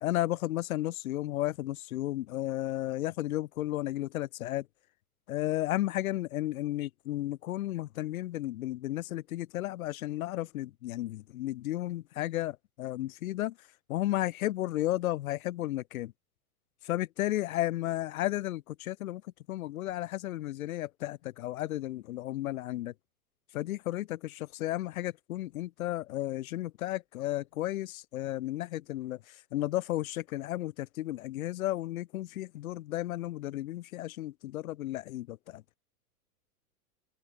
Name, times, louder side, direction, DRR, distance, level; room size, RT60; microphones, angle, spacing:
voice 1, 0.0-4.7 5.3-13.6 13.9-16.1 16.8-19.2 19.5-22.9 23.5-35.6, left 15 dB, 65° left, 1.6 m, -33 dB
open air
hypercardioid pair, 110°, 45 cm